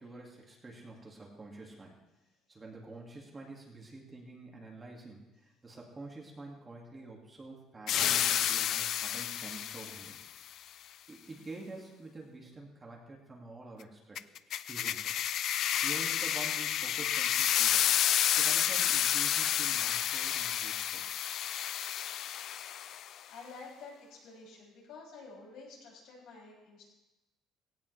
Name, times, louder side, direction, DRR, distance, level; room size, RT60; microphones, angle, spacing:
voice 1, 0.0-2.0 2.5-10.2 11.1-14.2 14.5-15.2 15.8-17.8 18.3-21.0, right 2 dB, 15° right, -1 dB, 2.1 m, -48 dB
sound 1, 7.9-10.2 14.2-23.1, left 10 dB, 45° left, 0.4 m, -30 dB
voice 2, 23.3-26.8, left 4 dB, 65° left, -3 dB, 6.7 m, -50 dB
18.0 x 17.0 x 3.3 m, 1.0 s
cardioid pair, 175°, 0 cm